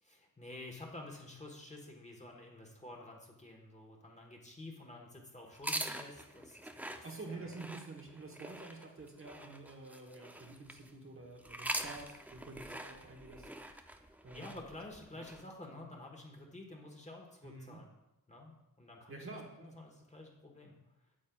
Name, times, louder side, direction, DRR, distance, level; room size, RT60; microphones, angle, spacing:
voice 1, 0.0-7.5 14.3-17.9 18.3-19.4 19.8-20.7, left 2 dB, 20° left, 0 dB, 1.2 m, -50 dB
sound 1, 5.5-10.9 11.4-15.4, right 1 dB, 5° right, 0.4 m, -44 dB
voice 2, 7.0-13.5 14.2-14.7 17.4-17.8 19.1-19.8, right 3 dB, 40° right, 1 dB, 1.1 m, -49 dB
8.7 x 7.2 x 2.3 m, 0.92 s
wide cardioid pair, 95°, 34 cm